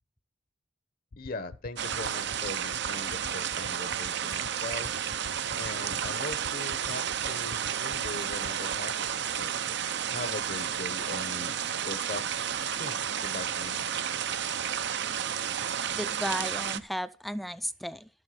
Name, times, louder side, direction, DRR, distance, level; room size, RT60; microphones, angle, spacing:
sound 1, 1.1-8.8, left 3 dB, 85° left, 0.8 m, -44 dB
voice 1, 1.2-4.9 5.6-8.9 9.3-9.6 10.1-11.5 11.8-12.2 12.7-13.9, left 3 dB, 45° left, 1.0 m, -40 dB
sound 2, 1.8-16.8, right 8 dB, 60° right, 0.7 m, -32 dB
voice 2, 15.9-18.1, equal, ahead, 0.5 m, -34 dB
12.5 x 7.8 x 5.8 m
head